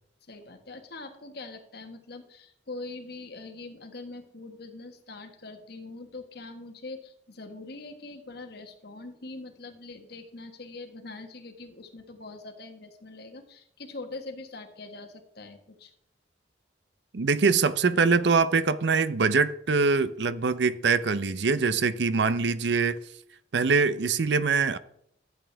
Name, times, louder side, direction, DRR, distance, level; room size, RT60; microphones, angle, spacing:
voice 1, 0.3-15.9, left 3 dB, 65° left, 1.5 m, -43 dB
voice 2, 17.1-23.0 23.5-24.8, right 4 dB, 70° right, 0.6 m, -23 dB
12.5 x 8.3 x 3.4 m
head